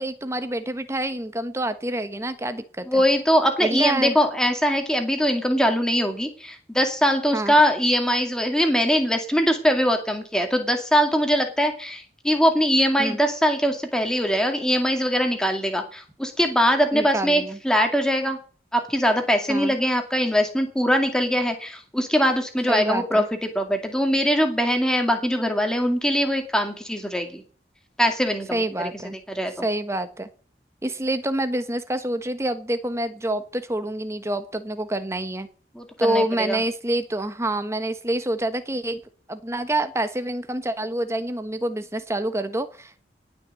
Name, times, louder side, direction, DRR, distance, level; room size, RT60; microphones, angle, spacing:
voice 1, 0.0-3.0 3.6-4.2 7.3-7.5 13.0-13.2 16.9-17.6 19.5-19.7 22.7-23.2 28.5-29.2 29.6-30.3 30.8-35.5 36.0-39.0 39.3-43.0, right 1 dB, 15° right, 10 dB, 1.2 m, -27 dB
voice 2, 2.9-18.4 18.7-27.4 28.0-28.9 29.3-29.6 35.7-36.6, equal, 5° left, 5 dB, 2.2 m, -22 dB
18.5 x 6.1 x 7.7 m, 0.43 s
head